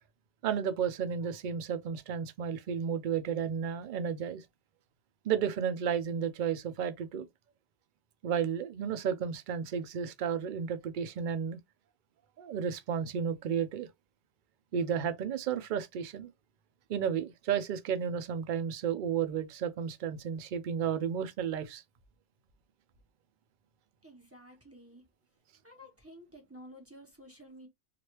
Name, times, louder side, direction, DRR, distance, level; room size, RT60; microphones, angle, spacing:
voice 1, 0.4-4.4 5.2-7.3 8.2-11.6 12.4-13.9 14.7-16.3 16.9-21.8, right 7 dB, 60° right, 0.5 m, -32 dB
voice 2, 24.0-25.0 25.6-27.7, equal, 15° right, 0.8 m, -52 dB
3.1 x 2.5 x 2.9 m
omnidirectional pair, 1.2 m